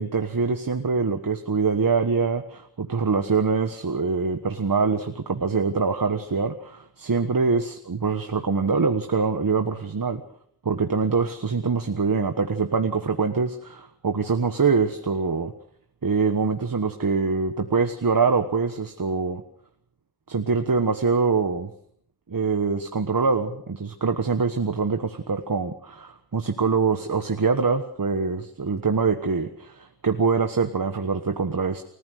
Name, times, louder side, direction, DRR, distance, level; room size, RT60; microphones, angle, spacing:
voice 1, 0.0-10.2 10.6-15.5 16.0-19.4 20.3-21.7 22.3-31.8, right 5 dB, 60° right, 8 dB, 1.4 m, -24 dB
29.0 x 15.0 x 6.5 m, 0.66 s
wide cardioid pair, 60°, 38 cm